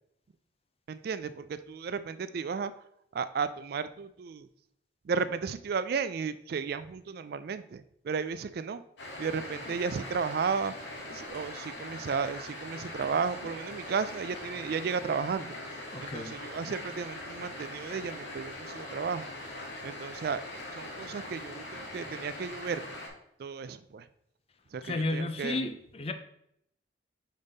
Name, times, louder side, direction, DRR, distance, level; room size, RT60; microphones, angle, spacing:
voice 1, 0.9-2.7 3.1-4.5 5.0-8.8 9.2-10.7 11.1-15.6 16.0-19.3 19.8-22.8 23.4-24.1 24.7-25.6, right 5 dB, 55° right, 14 dB, 0.3 m, -34 dB
sound 1, 9.0-23.1, left 1 dB, 90° left, 1.8 m, -42 dB
voice 2, 15.9-16.4 24.8-26.1, left 2 dB, 35° left, 8 dB, 0.5 m, -33 dB
5.3 x 5.2 x 4.0 m, 0.73 s
head